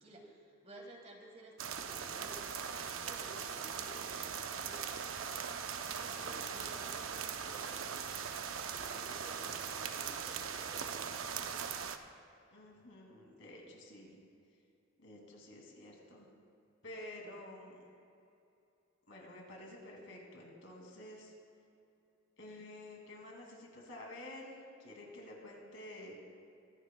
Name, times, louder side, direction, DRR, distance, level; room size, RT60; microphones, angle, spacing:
voice 1, 0.0-4.9 5.8-8.0 8.7-11.2, right 1 dB, 35° right, 1 dB, 1.5 m, -55 dB
sound 1, 1.6-12.0, right 7 dB, 90° right, 0.6 m, -40 dB
voice 2, 12.5-14.2 15.0-16.3 16.8-17.9 19.1-21.3 22.4-26.2, left 1 dB, 70° left, -1 dB, 2.4 m, -50 dB
23.0 x 9.6 x 2.2 m, 2.7 s
head